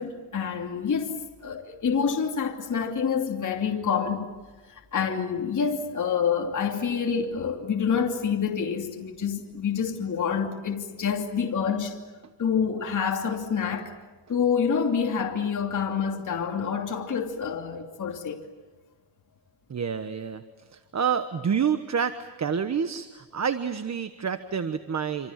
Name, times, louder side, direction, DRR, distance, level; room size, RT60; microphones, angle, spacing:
voice 1, 0.0-4.3 4.7-12.0 12.4-13.9 14.3-18.4, left 6 dB, 40° left, 2.9 m, -27 dB
voice 2, 19.7-20.4 20.9-25.3, right 7 dB, 35° right, 1.2 m, -28 dB
27.0 x 27.0 x 7.5 m
cardioid pair, 130°, 48 cm